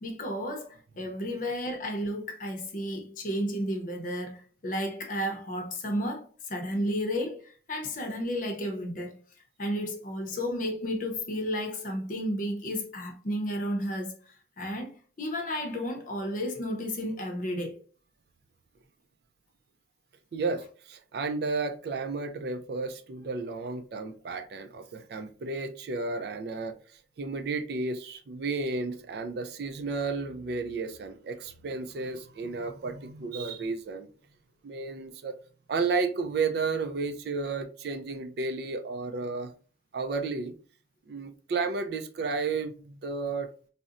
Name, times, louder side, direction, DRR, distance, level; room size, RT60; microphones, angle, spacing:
voice 1, 0.0-9.1 9.6-14.1 14.6-17.8, equal, 45° left, 0.6 m, -32 dB
voice 2, 20.3-26.7 27.2-34.1 34.6-35.3 35.7-39.5 39.9-40.5 41.1-43.5, right 4 dB, 60° right, 0.3 m, -32 dB
3.8 x 2.1 x 2.4 m
head